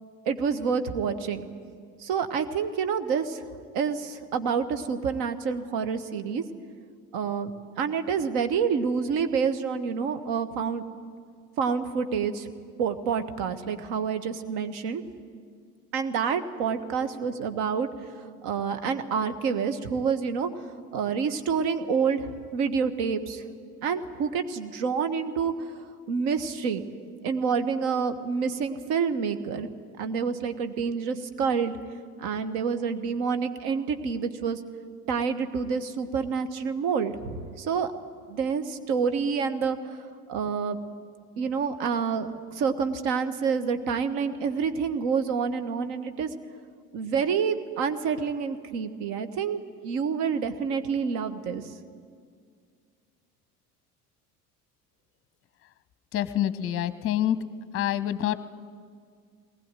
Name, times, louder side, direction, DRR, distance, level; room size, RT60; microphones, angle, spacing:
voice 1, 0.3-1.5 2.0-3.4 3.7-6.4 7.1-7.5 7.8-10.9 11.6-12.5 12.8-15.0 15.9-17.9 18.4-20.5 20.9-23.5 23.8-26.8 27.2-29.7 30.0-31.8 32.2-34.6 35.1-37.9 38.3-40.0 40.3-40.8 41.4-46.3 46.9-51.6, right 6 dB, 55° right, 9 dB, 1.7 m, -28 dB
voice 2, 56.1-57.4 57.7-58.4, left 11 dB, 30° left, 14 dB, 0.9 m, -26 dB
21.0 x 19.5 x 9.2 m, 2.1 s
figure-of-eight pair, 65°, 46 cm